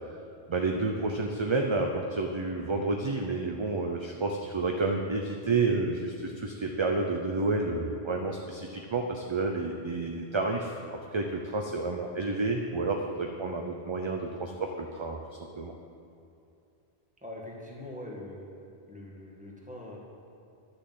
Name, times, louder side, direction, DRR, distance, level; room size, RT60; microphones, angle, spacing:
voice 1, 0.5-10.7 11.1-15.2 15.6-15.7, right 3 dB, 35° right, 2 dB, 0.6 m, -30 dB
voice 2, 17.2-18.5 18.9-20.0, left 1 dB, 5° right, -3 dB, 2.0 m, -42 dB
11.0 x 6.9 x 7.7 m, 2.6 s
omnidirectional pair, 1.1 m